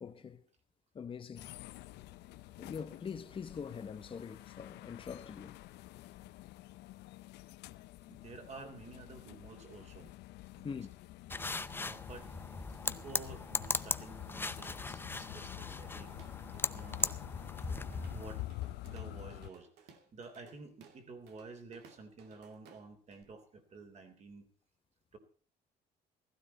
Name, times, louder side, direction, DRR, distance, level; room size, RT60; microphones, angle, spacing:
voice 1, 0.0-0.4 0.9-1.5 2.6-5.5 10.6-10.9, left 6 dB, 30° left, 0.9 m, -43 dB
sound 1, 1.4-19.5, left 16 dB, 85° left, 0.6 m, -48 dB
voice 2, 8.1-10.1 10.5-10.9 11.8-12.3 12.7-16.1 16.7-17.2 17.9-18.5 18.8-24.5 25.1-25.2, right 3 dB, 40° right, 3.4 m, -51 dB
sound 2, 11.3-18.4, left 3 dB, 15° left, 0.6 m, -38 dB
Drum kit / Drum, 15.8-17.2 17.6-23.2, right 6 dB, 80° right, 2.4 m, -60 dB
16.0 x 14.5 x 4.2 m
cardioid pair, 110°, 17 cm